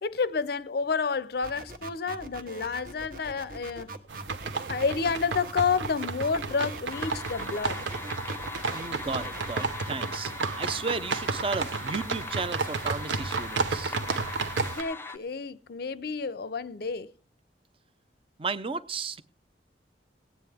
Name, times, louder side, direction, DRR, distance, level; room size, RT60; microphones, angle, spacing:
voice 1, 0.0-3.9 4.7-7.9 14.7-17.1, left 5 dB, 55° left, 0.5 m, -30 dB
sound 1, 1.4-9.7, right 2 dB, 55° right, 1.2 m, -42 dB
sound 2, 4.1-14.8, right 4 dB, 85° right, 0.9 m, -32 dB
sound 3, 6.9-15.2, left 3 dB, 10° left, 0.6 m, -40 dB
voice 2, 8.7-13.9 18.4-19.2, right 4 dB, 30° right, 0.6 m, -34 dB
18.0 x 9.2 x 3.5 m
head